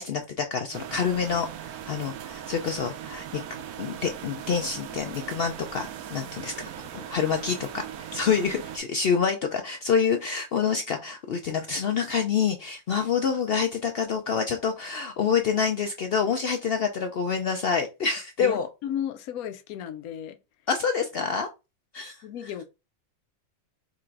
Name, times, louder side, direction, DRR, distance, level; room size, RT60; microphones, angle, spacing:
voice 1, 0.0-3.4 3.8-18.7 20.7-21.5 21.9-22.2, left 6 dB, 70° left, 0.5 m, -27 dB
sound 1, 0.7-8.8, right 10 dB, 80° right, 1.0 m, -39 dB
voice 2, 18.4-20.4 22.2-22.6, left 10 dB, 85° left, 1.0 m, -34 dB
3.9 x 2.5 x 4.4 m
omnidirectional pair, 1.5 m